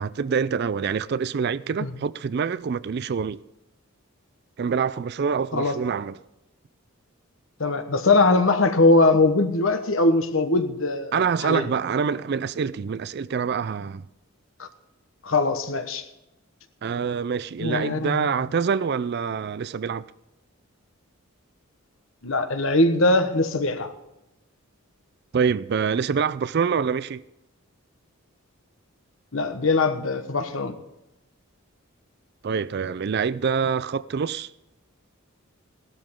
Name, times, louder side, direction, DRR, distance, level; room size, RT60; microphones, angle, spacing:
voice 1, 0.0-3.4 4.6-6.2 11.1-14.0 16.8-20.1 25.3-27.2 32.4-34.5, right 6 dB, 50° right, 0.4 m, -26 dB
voice 2, 7.6-11.7 14.6-14.7 15.2-16.0 17.6-18.4 22.2-23.9 29.3-30.7, left 2 dB, 65° left, 1.2 m, -21 dB
16.5 x 12.0 x 3.7 m
head